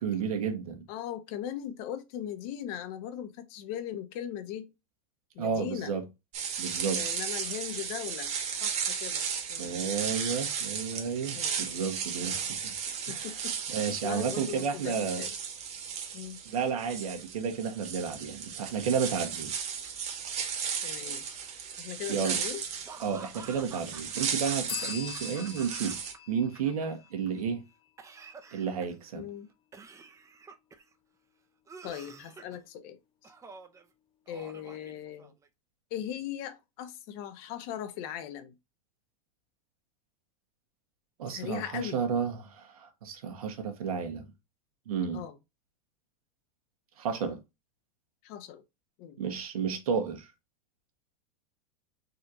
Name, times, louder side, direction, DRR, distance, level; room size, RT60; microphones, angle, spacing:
voice 1, 0.0-0.8 5.4-6.1 6.6-7.1 9.6-12.7 13.1-13.3 13.7-15.3 16.5-19.5 22.1-22.4 23.0-27.6 28.5-29.3 41.2-44.2 44.9-45.2 47.0-47.4 49.2-50.3, right 6 dB, 85° right, 1.3 m, -32 dB
voice 2, 0.9-4.7 5.3-5.9 6.9-8.3 8.6-9.9 11.3-11.7 12.2-12.5 13.1-15.3 16.1-16.4 20.8-21.2 21.8-22.6 29.1-29.5 31.8-33.0 34.3-35.3 35.9-38.5 41.3-42.0 45.1-45.3 48.2-48.6 49.0-49.2, left 10 dB, 55° left, 0.9 m, -39 dB
sound 1, 6.3-26.1, right 7 dB, 35° right, 1.3 m, -35 dB
Laughter / Cough, 22.8-26.2 26.4-27.3 28.0-29.1 29.7-30.9 31.7-32.6 33.2-33.8 34.3-35.5, right 5 dB, 15° right, 0.7 m, -49 dB
sound 2, 24.7-28.2, left 10 dB, 30° left, 0.4 m, -43 dB
4.2 x 2.8 x 3.7 m
supercardioid pair, 120°, 18 cm